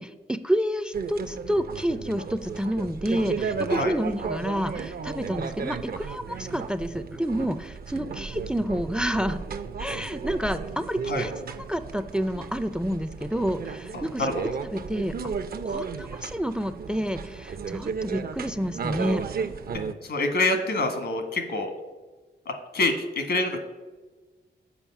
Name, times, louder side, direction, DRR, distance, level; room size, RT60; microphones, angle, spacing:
voice 1, 0.0-9.4 9.8-11.3 11.7-14.3 14.7-15.1 15.6-19.3, equal, 5° right, 13 dB, 0.4 m, -29 dB
sound 1, 0.9-19.9, right 5 dB, 60° right, 0.6 m, -34 dB
voice 2, 13.9-14.3 20.0-21.7 22.4-23.6, left 2 dB, 80° left, 6 dB, 1.5 m, -26 dB
7.2 x 5.2 x 7.2 m, 1.2 s
wide cardioid pair, 110°, 18 cm